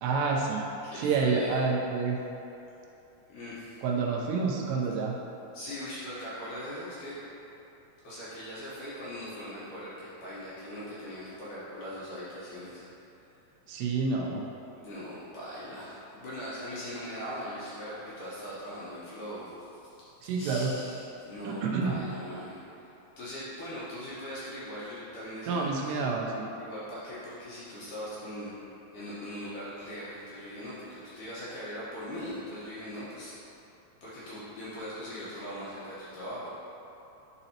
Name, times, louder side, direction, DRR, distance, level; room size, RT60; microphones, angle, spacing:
voice 1, 0.0-0.7 1.0-2.2 3.8-5.1 13.7-14.4 20.2-20.7 21.4-21.9 25.5-26.4, right 4 dB, 90° right, -2 dB, 2.9 m, -28 dB
voice 2, 0.8-1.6 3.3-3.8 5.5-7.2 8.0-12.8 14.8-19.7 20.2-22.9 23.2-26.0 26.6-28.5 28.9-33.3 34.0-36.5, equal, 65° left, -10 dB, 2.3 m, -40 dB
10.0 x 4.0 x 2.9 m, 3.0 s
omnidirectional pair, 4.7 m